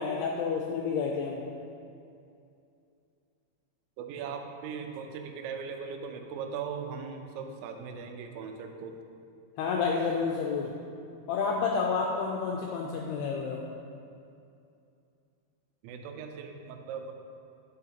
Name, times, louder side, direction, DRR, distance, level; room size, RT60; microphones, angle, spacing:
voice 1, 0.0-1.4 9.6-10.7 11.3-13.6, left 5 dB, 85° left, -1 dB, 2.3 m, -29 dB
voice 2, 4.0-9.0 15.8-17.1, right 6 dB, 90° right, 5 dB, 3.0 m, -39 dB
8.9 x 8.1 x 2.9 m, 2.5 s
omnidirectional pair, 5.2 m